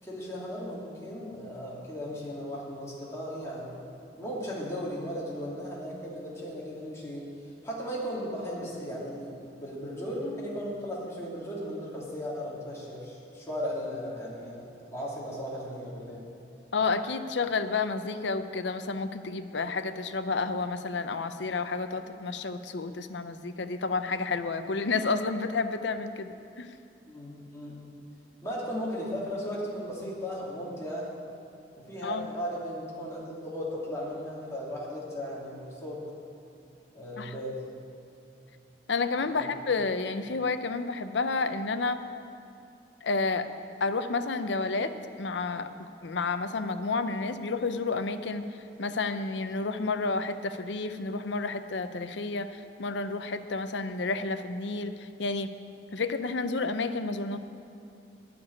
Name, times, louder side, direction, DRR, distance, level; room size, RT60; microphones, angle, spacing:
voice 1, 0.0-3.8 4.2-7.3 7.6-14.6 14.9-16.2 27.1-27.8 28.4-31.1 31.9-36.0 36.9-37.6 39.2-39.5, equal, 15° left, -6 dB, 2.8 m, -36 dB
voice 2, 16.7-26.7 32.0-32.3 37.2-37.3 38.9-42.0 43.0-43.5 43.8-48.4 48.8-55.5 55.9-57.4, left 3 dB, 70° left, 10 dB, 0.6 m, -30 dB
12.0 x 6.9 x 9.6 m, 2.6 s
head